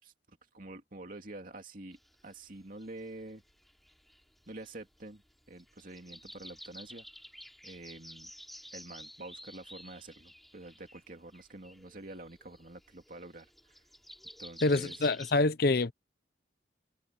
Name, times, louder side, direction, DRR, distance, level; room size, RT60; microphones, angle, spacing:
voice 1, 0.0-2.0 2.2-3.4 4.5-5.2 5.5-7.1 7.6-8.3 8.7-13.8 14.4-15.1, right 2 dB, 50° right, 2.6 m, -47 dB
sound 1, 1.9-15.3, equal, ahead, 2.8 m, -52 dB
voice 2, 14.6-15.9, left 2 dB, 55° left, 0.7 m, -26 dB
head